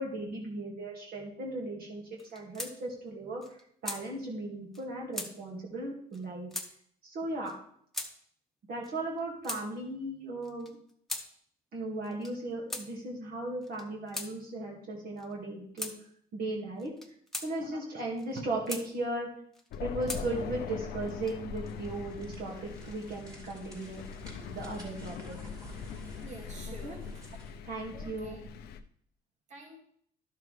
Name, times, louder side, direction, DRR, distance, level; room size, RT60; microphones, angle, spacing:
voice 1, 0.0-6.5 7.0-7.5 8.7-10.8 11.7-15.9 16.3-17.2 17.4-19.3 19.8-24.0 24.5-25.3 26.7-27.0 27.6-28.4, right 2 dB, 60° right, -2 dB, 2.1 m, -37 dB
sound 1, 2.2-2.7 3.1-3.2 3.4-4.0 4.7-4.8 5.1-5.3 6.1-6.2 6.5-6.7 7.4-7.6 7.9-8.1 8.8-9.6 10.4-11.3 12.0-12.3 12.7-12.9 13.6-14.3 15.2-15.3 15.8-16.0 16.8-17.5 18.2-18.9 19.5-20.2 21.0-21.6, left 1 dB, ahead, 1.1 m, -39 dB
Thunder, 19.7-28.8, left 7 dB, 75° left, 0.6 m, -42 dB
sound 2, 21.6-27.6, right 1 dB, 20° right, 2.5 m, -51 dB
voice 2, 26.2-27.3 27.9-28.4 29.5-29.8, right 3 dB, 45° right, 1 dB, 2.3 m, -48 dB
12.0 x 6.7 x 3.3 m, 0.63 s
cardioid pair, 110°, 17 cm